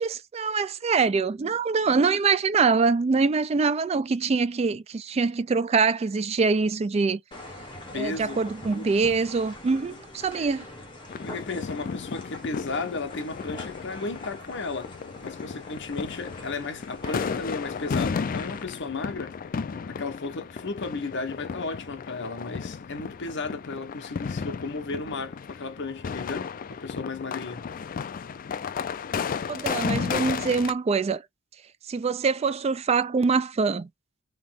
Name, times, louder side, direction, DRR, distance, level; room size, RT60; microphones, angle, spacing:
voice 1, 0.0-7.2 7.9-10.7 29.5-31.2 31.9-33.9, right 4 dB, 30° right, 0.3 m, -24 dB
sound 1, 7.3-18.6, left 1 dB, 25° left, 1.3 m, -44 dB
voice 2, 7.9-8.4 8.7-9.0 9.8-10.0 11.2-14.9 15.2-19.4 19.9-27.7, left 3 dB, 60° left, 1.0 m, -34 dB
sound 2, 11.1-30.7, left 6 dB, 45° left, 0.3 m, -34 dB
3.3 x 2.9 x 3.6 m
head